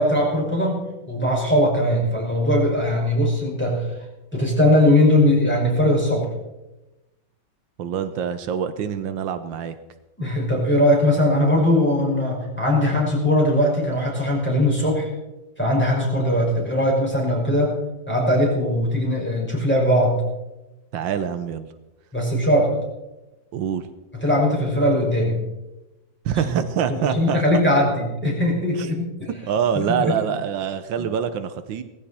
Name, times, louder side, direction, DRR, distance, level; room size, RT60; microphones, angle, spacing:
voice 1, 0.0-3.9 4.3-6.3 10.2-15.1 15.6-17.7 18.1-20.2 22.1-22.7 24.1-25.4 26.4-26.5 26.9-29.3 29.7-30.2, left 1 dB, 5° left, -3 dB, 5.5 m, -20 dB
voice 2, 7.8-9.7 20.9-21.7 23.5-23.9 26.2-27.6 28.8-28.9 29.5-31.8, right 8 dB, 85° right, 10 dB, 1.6 m, -25 dB
18.0 x 15.0 x 4.3 m, 1.0 s
omnidirectional pair, 2.1 m